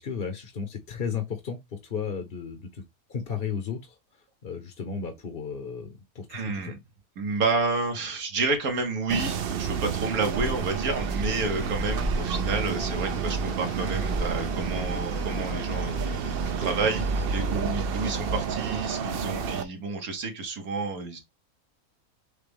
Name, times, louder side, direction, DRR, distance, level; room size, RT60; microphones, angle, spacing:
voice 1, 0.0-2.8 3.1-4.0 4.4-6.7, left 6 dB, 45° left, 0.9 m, -34 dB
voice 2, 6.3-6.8 7.2-21.2, right 3 dB, 90° right, 1.8 m, -30 dB
sound 1, 9.1-19.6, right 5 dB, 60° right, 0.6 m, -30 dB
sound 2, 10.2-16.5, right 1 dB, 20° right, 0.8 m, -37 dB
sound 3, 11.6-17.5, left 7 dB, 75° left, 1.1 m, -41 dB
6.7 x 2.3 x 3.4 m
omnidirectional pair, 1.5 m